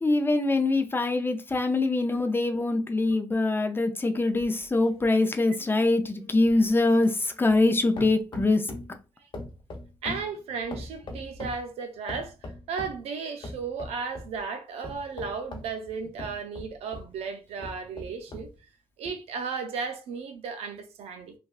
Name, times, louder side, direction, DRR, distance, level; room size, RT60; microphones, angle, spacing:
voice 1, 0.0-7.1 7.4-8.6, left 2 dB, 20° left, 0.5 m, -23 dB
sound 1, 4.4-7.7 8.0-9.0 9.3-11.7 12.1-13.0 13.4-14.3 14.8-17.1 17.6-18.5 19.1-19.2, left 2 dB, 50° left, 0.8 m, -41 dB
voice 2, 10.0-12.3 12.7-18.5 19.0-21.3, right 5 dB, 90° right, 0.5 m, -34 dB
3.4 x 2.2 x 2.4 m
cardioid pair, 80°, 10 cm